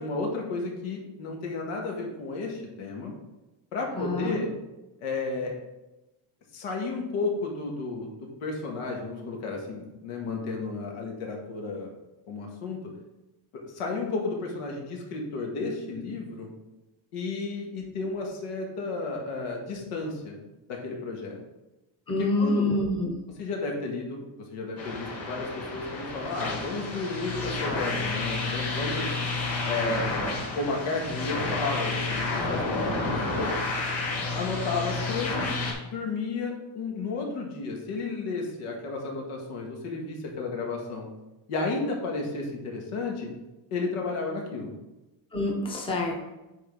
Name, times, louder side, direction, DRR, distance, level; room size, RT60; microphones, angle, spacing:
voice 1, 0.0-3.1 3.7-4.5 5.0-5.5 6.5-11.9 12.3-12.8 13.6-16.5 17.1-20.4 20.7-21.4 22.2-22.7 23.4-29.1 29.6-33.5 34.3-35.5 35.8-41.1 41.5-43.3 43.7-44.7, left 3 dB, 85° left, 0 dB, 1.9 m, -32 dB
voice 2, 4.0-4.4 22.1-23.2 45.3-46.1, left 2 dB, 10° left, 0 dB, 0.8 m, -26 dB
sound 1, 24.8-35.7, left 3 dB, 30° left, 1.7 m, -30 dB
9.2 x 3.9 x 3.8 m, 1.0 s
cardioid pair, 165°, 50 cm